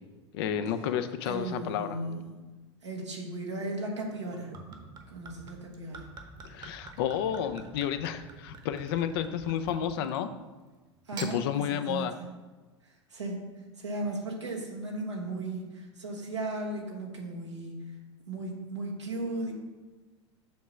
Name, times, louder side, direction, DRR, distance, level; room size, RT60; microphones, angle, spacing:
voice 1, 0.3-2.0 6.4-10.3 11.2-12.1, left 9 dB, 60° left, 10 dB, 0.6 m, -31 dB
voice 2, 1.2-2.3 2.8-4.5 5.1-6.1 11.0-12.2 12.8-18.0 18.3-19.5, right 2 dB, 90° right, -2 dB, 1.4 m, -36 dB
Gurgling / Chink clink / Liquid, 4.1-10.3 11.0-11.4, right 4 dB, 30° right, 1.0 m, -47 dB
7.2 x 3.0 x 5.7 m, 1.2 s
hypercardioid pair, 85°, 15 cm